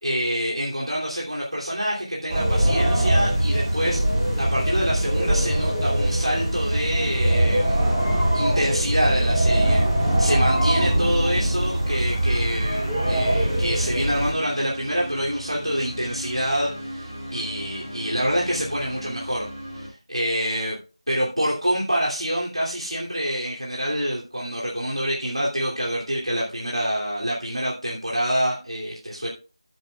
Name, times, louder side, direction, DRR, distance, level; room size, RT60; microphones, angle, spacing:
voice 1, 0.0-4.0 4.4-19.5 19.7-20.8 21.1-29.3, equal, 85° right, -4 dB, 2.9 m, -26 dB
sound 1, 2.3-14.3, right 1 dB, 10° right, 1.9 m, -22 dB
sound 2, 7.8-19.9, equal, 30° right, 5.4 m, -36 dB
15.0 x 7.6 x 2.4 m, 0.33 s
figure-of-eight pair, 170°, 3 cm